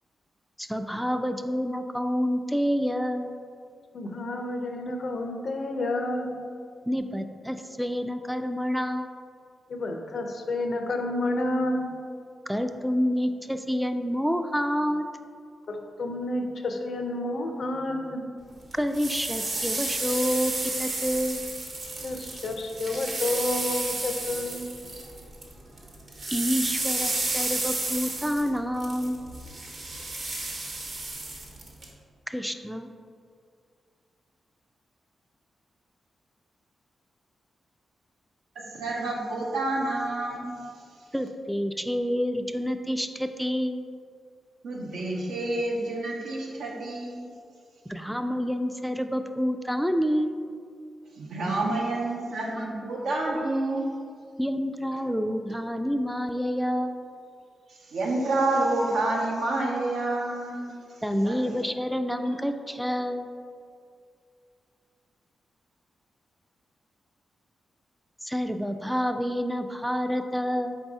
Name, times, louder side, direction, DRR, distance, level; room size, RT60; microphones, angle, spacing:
voice 1, 0.6-3.3 6.9-9.1 12.5-15.1 18.7-21.4 26.3-29.2 32.3-32.9 41.1-43.8 47.9-50.4 54.4-57.0 61.0-63.3 68.2-70.8, equal, ahead, 7 dB, 0.3 m, -28 dB
voice 2, 3.9-6.3 9.7-11.9 15.7-18.2 21.9-24.9, left 2 dB, 70° left, 4 dB, 0.5 m, -30 dB
sound 1, 18.7-25.5 25.8-31.9, right 2 dB, 55° right, 0.9 m, -32 dB
voice 3, 38.6-40.6 44.6-47.3 51.2-53.9 57.7-60.8 61.2-61.4 62.3-62.4, right 2 dB, 85° right, -2 dB, 0.7 m, -28 dB
4.0 x 2.7 x 4.6 m, 2.2 s
cardioid pair, 60°, 0 cm